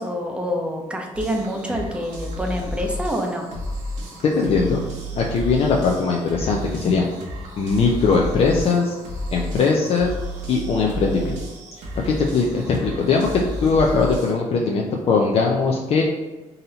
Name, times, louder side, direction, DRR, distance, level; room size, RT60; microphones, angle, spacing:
voice 1, 0.0-3.5, equal, 10° right, 1 dB, 0.7 m, -26 dB
sound 1, 1.1-14.3, equal, 90° right, 1.1 m, -32 dB
voice 2, 4.3-4.8 5.2-7.1 7.6-9.0 9.3-10.1 10.5-11.4 12.0-16.0, left 4 dB, 55° left, 0 dB, 0.5 m, -20 dB
3.9 x 2.8 x 3.9 m, 1.2 s
cardioid pair, 110°, 12 cm